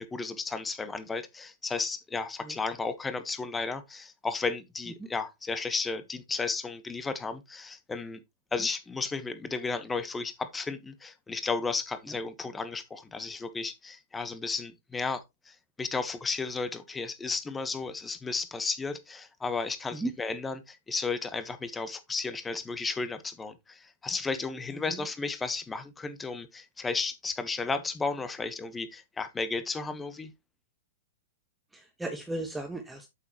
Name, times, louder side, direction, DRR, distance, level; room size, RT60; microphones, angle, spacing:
voice 1, 0.0-8.2 8.5-30.3, left 4 dB, 15° left, 1.3 m, -33 dB
voice 2, 31.7-33.1, right 2 dB, 5° right, 1.6 m, -36 dB
8.4 x 7.2 x 3.1 m
hypercardioid pair, 115°, 0 cm